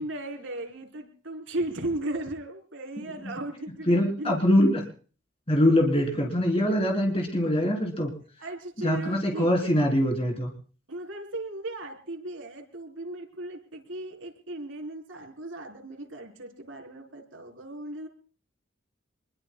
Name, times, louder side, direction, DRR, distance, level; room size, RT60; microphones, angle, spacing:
voice 1, 0.0-4.4 5.9-6.1 8.4-9.8 10.9-18.1, right 1 dB, 75° right, 2 dB, 3.9 m, -36 dB
voice 2, 3.9-4.8 5.5-8.1 8.8-10.5, left 1 dB, 30° left, 1 dB, 3.6 m, -23 dB
27.0 x 22.0 x 2.3 m, 0.41 s
head